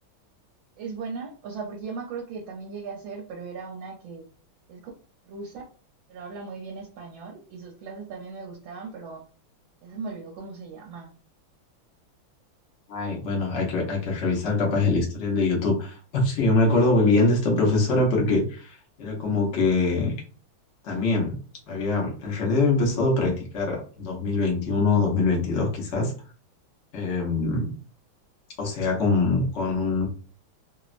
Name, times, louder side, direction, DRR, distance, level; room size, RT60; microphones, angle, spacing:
voice 1, 0.8-4.3 4.7-4.9 5.3-5.6 6.1-9.2 9.8-11.1, right 4 dB, 75° right, -2 dB, 1.4 m, -38 dB
voice 2, 12.9-20.1 20.8-21.4 21.7-26.1 26.9-27.7 28.6-30.1, left 3 dB, 80° left, -1 dB, 0.6 m, -23 dB
3.4 x 2.0 x 2.4 m, 0.40 s
omnidirectional pair, 2.3 m